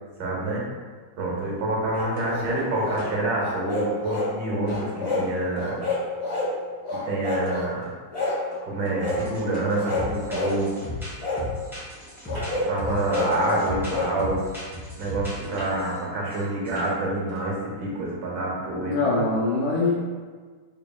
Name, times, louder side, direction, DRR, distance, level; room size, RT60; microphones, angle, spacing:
voice 1, 0.2-0.6 1.2-5.8 6.9-7.9 8.6-10.8 12.7-14.4 15.0-19.0, right 2 dB, 65° right, -3 dB, 1.4 m, -27 dB
sound 1, 1.9-3.0 3.4-4.3 4.6-5.3 5.6-6.5 6.8-7.7 8.1-8.4 9.0-9.2 9.7-10.6 11.2-11.4 12.3-14.1, left 3 dB, 40° left, 1.1 m, -29 dB
sound 2, 2.2-4.3 4.7-6.5 7.5-10.7 12.3-13.7 14.0-17.7, right 1 dB, 50° right, 1.2 m, -43 dB
sound 3, 9.1-9.4 9.7-15.9 16.3-16.4 16.7-16.9, left 2 dB, 5° right, 0.5 m, -36 dB
voice 2, 18.8-20.0, left 3 dB, 80° left, -5 dB, 1.4 m, -23 dB
4.0 x 3.5 x 2.2 m, 1.5 s
omnidirectional pair, 2.3 m